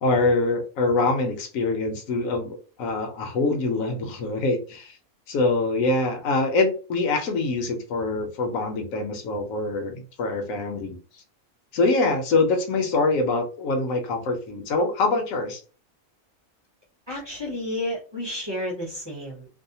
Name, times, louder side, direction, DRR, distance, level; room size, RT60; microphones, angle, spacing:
voice 1, 0.0-5.0 5.3-11.0 11.7-15.6, left 3 dB, 80° left, 4 dB, 1.0 m, -24 dB
voice 2, 17.1-19.5, left 1 dB, 25° right, -5 dB, 0.8 m, -31 dB
2.6 x 2.1 x 2.7 m, 0.36 s
omnidirectional pair, 1.4 m